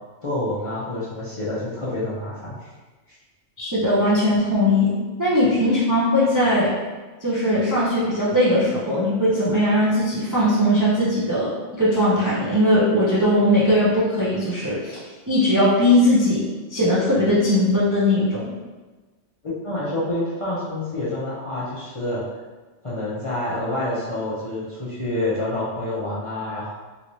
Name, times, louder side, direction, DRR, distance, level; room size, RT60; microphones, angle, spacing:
voice 1, 0.2-2.7 3.1-3.2 19.4-22.2 22.8-26.8, left 1 dB, 40° left, -10 dB, 0.5 m, -28 dB
voice 2, 3.6-4.9 5.2-6.7 7.2-11.5 11.8-15.0 15.3-16.4 16.7-18.4, left 1 dB, 25° right, -8 dB, 0.4 m, -19 dB
3.0 x 3.0 x 2.7 m, 1.3 s
omnidirectional pair, 1.2 m